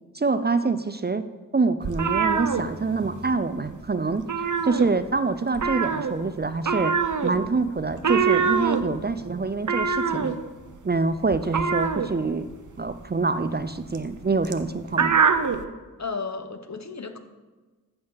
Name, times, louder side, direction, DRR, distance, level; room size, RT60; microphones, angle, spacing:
voice 1, 0.1-1.3 1.5-4.3 4.6-7.0 7.2-10.3 10.8-12.5 12.8-15.2, right 3 dB, 30° right, 11 dB, 0.5 m, -25 dB
sound 1, 1.8-3.3 3.6-3.8 4.1-5.2 5.5-15.6, right 6 dB, 60° right, 0.8 m, -25 dB
voice 2, 16.0-17.2, left 4 dB, 55° left, 7 dB, 1.1 m, -33 dB
14.0 x 7.0 x 4.0 m, 1.3 s
wide cardioid pair, 55°, 34 cm